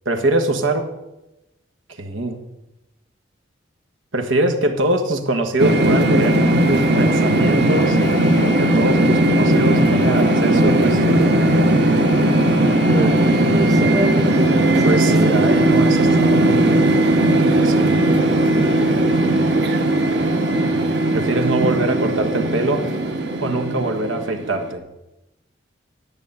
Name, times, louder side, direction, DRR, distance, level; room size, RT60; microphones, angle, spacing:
voice 1, 0.0-0.9 2.0-2.4 4.1-6.4 6.7-8.0 8.4-11.9 12.9-13.7 14.8-18.0 21.1-22.9 23.4-24.8, right 2 dB, 85° right, 5 dB, 1.5 m, -23 dB
sound 1, 5.6-24.7, right 1 dB, 60° right, 1.3 m, -17 dB
voice 2, 12.9-15.4, right 1 dB, 20° right, 5 dB, 1.0 m, -28 dB
10.5 x 7.0 x 8.8 m, 0.95 s
head